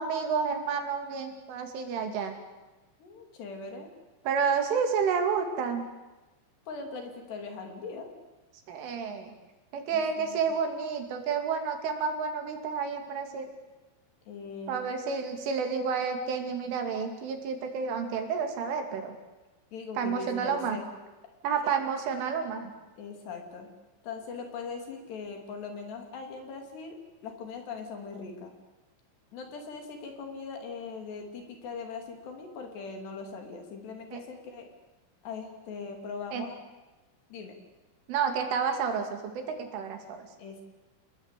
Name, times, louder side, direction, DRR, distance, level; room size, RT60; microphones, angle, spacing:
voice 1, 0.0-2.4 4.2-5.9 8.7-9.4 9.7-13.5 14.7-19.2 20.0-20.8 21.4-22.7 34.1-34.2 36.3-36.4 38.1-40.3, right 6 dB, 75° right, 5 dB, 5.0 m, -30 dB
voice 2, 3.0-3.9 6.7-8.1 9.9-10.5 14.3-14.8 19.7-20.9 21.6-21.7 23.0-23.7 24.0-28.5 29.3-34.7 35.2-36.5 37.3-37.6 40.4-40.6, left 4 dB, 60° left, 4 dB, 4.9 m, -40 dB
29.5 x 20.5 x 8.4 m, 1.1 s
omnidirectional pair, 5.8 m